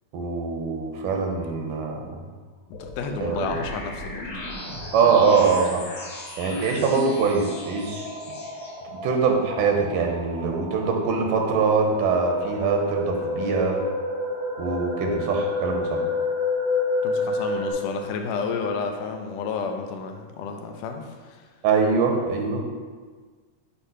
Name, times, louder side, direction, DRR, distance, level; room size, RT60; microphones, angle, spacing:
voice 1, 0.1-2.2 3.2-3.5 4.9-5.9 6.4-8.1 9.0-13.8 14.6-16.0 21.6-22.6, right 5 dB, 85° right, 2 dB, 2.5 m, -23 dB
voice 2, 2.7-4.4 17.0-21.4, left 5 dB, 85° left, 4 dB, 2.2 m, -31 dB
sound 1, 2.7-8.7, left 2 dB, 60° left, 2.1 m, -37 dB
sound 2, 6.4-6.5 6.8-17.7, left 2 dB, 35° right, 2.3 m, -30 dB
8.3 x 3.0 x 5.5 m, 1.5 s
omnidirectional pair, 3.7 m